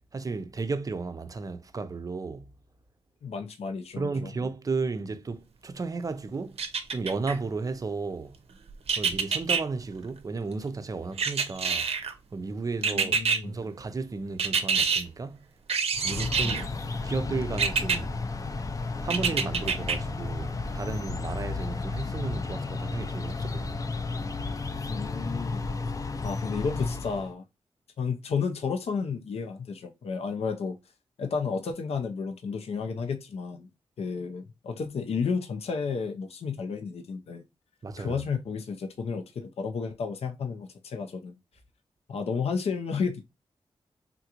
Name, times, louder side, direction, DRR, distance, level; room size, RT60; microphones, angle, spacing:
voice 1, 0.1-2.5 4.0-6.6 6.9-8.4 8.9-11.9 12.3-15.5 16.0-16.8 17.0-18.2 19.0-23.8 37.8-38.2, right 4 dB, 35° right, 0.4 m, -34 dB
voice 2, 3.2-4.3 12.8-13.5 16.4-16.6 24.9-25.7 26.2-27.4 28.0-30.8 31.2-33.7 34.0-37.4 38.0-41.3 42.1-43.2, left 5 dB, 85° left, 0.5 m, -32 dB
sound 1, 6.6-7.4 8.9-9.6 11.2-12.1 12.8-13.4 14.4-15.0 15.7-16.7 17.6-18.0 19.1-20.0 20.4-20.5, right 5 dB, 85° right, 0.6 m, -26 dB
sound 2, 15.9-27.3, left 3 dB, 35° left, 0.4 m, -33 dB
3.6 x 2.4 x 2.8 m
wide cardioid pair, 100°, 10 cm